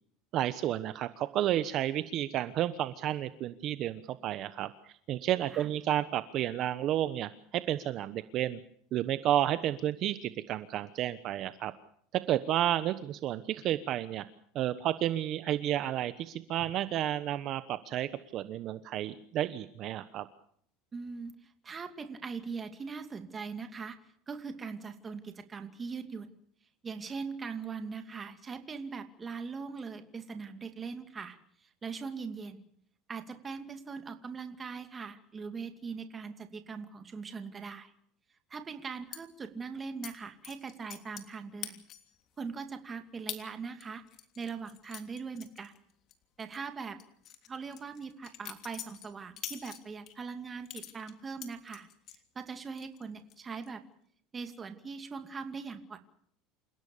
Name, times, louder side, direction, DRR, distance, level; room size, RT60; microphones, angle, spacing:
voice 1, 0.3-4.7 5.1-8.6 8.9-11.7 12.1-14.3 14.5-20.3, right 12 dB, 45° right, 13 dB, 1.1 m, -31 dB
voice 2, 20.9-24.0 24.3-26.4 26.8-32.7 33.1-37.9 38.5-41.8 42.4-44.0 44.4-45.7 46.4-47.0 47.5-51.9 52.3-53.8 54.3-56.0, right 5 dB, 20° right, 8 dB, 2.5 m, -41 dB
sound 1, 39.1-39.2 40.0-40.1 40.4-41.3 41.6-42.2 42.6-42.7 43.3-43.4 43.8-46.1 46.4-46.6 47.0-50.1 50.7-52.2 52.6-53.0 53.3-53.7, left 11 dB, 45° left, 3.2 m, -44 dB
28.5 x 17.0 x 6.8 m, 0.63 s
supercardioid pair, 135°, 0 cm